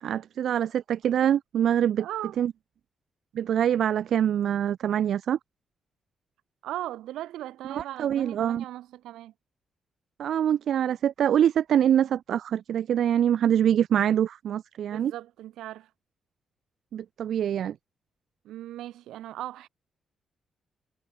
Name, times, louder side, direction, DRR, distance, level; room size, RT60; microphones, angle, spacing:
voice 1, 0.0-2.1 2.4-2.5 3.3-5.4 7.7-8.6 10.2-15.1 16.9-17.7, right 9 dB, 75° right, 0.4 m, -24 dB
voice 2, 2.0-2.4 6.6-9.3 14.9-15.9 18.4-19.7, right 13 dB, 90° right, 2.2 m, -38 dB
cardioid pair, 65°, 0 cm